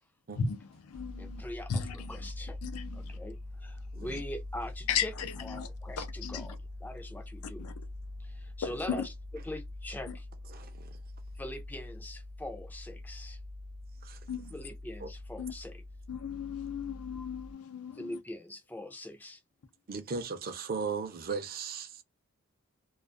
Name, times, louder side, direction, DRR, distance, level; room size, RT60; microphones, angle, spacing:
voice 1, 0.4-1.4 1.7-2.3 2.6-3.2 4.9-5.7 6.0-6.6 7.6-7.7 8.6-8.7 10.1-10.2 14.3-14.6 15.4-15.5 16.1-18.2, left 6 dB, 90° left, 0.5 m, -36 dB
sound 1, 0.9-17.5, left 2 dB, 80° right, 0.7 m, -44 dB
voice 2, 1.2-2.6 2.9-5.1 5.4-7.7 8.2-9.1 9.4-10.3 11.4-13.4 14.5-15.8 18.0-19.4, left 1 dB, 10° left, 0.4 m, -42 dB
voice 3, 10.5-10.9 14.0-14.2 15.0-15.1 19.9-22.0, right 5 dB, 45° right, 0.5 m, -37 dB
2.4 x 2.4 x 2.3 m
head